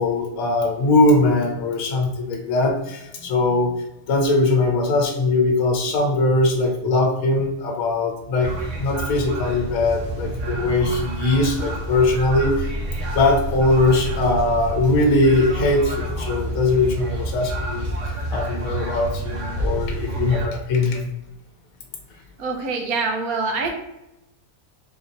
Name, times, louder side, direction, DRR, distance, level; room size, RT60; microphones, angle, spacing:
voice 1, 0.0-3.7 4.1-8.5 8.8-12.7 13.1-17.9 18.3-21.1, left 2 dB, 70° left, 2 dB, 1.2 m, -20 dB
sound 1, 8.4-20.5, right 1 dB, 60° right, 1.1 m, -28 dB
voice 2, 22.4-23.7, right 4 dB, 80° right, 3 dB, 1.3 m, -25 dB
4.0 x 2.9 x 4.0 m, 0.91 s
omnidirectional pair, 1.5 m